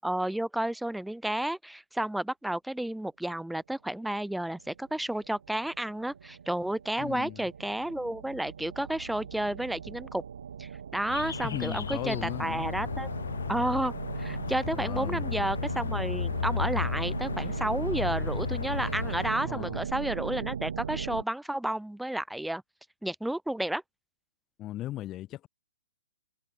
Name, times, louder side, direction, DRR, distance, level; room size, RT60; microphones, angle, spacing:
voice 1, 0.0-10.2 10.6-13.1 13.5-13.9 14.2-22.6 23.0-23.8, right 1 dB, ahead, 1.8 m, -31 dB
sound 1, 4.4-21.2, right 7 dB, 60° right, 2.3 m, -39 dB
voice 2, 7.0-7.5 11.4-12.7 14.7-15.3 19.4-19.9 24.6-25.5, left 14 dB, 25° left, 7.7 m, -37 dB
sound 2, 11.1-19.3, left 7 dB, 60° left, 2.1 m, -34 dB
figure-of-eight pair, 120°, 0 cm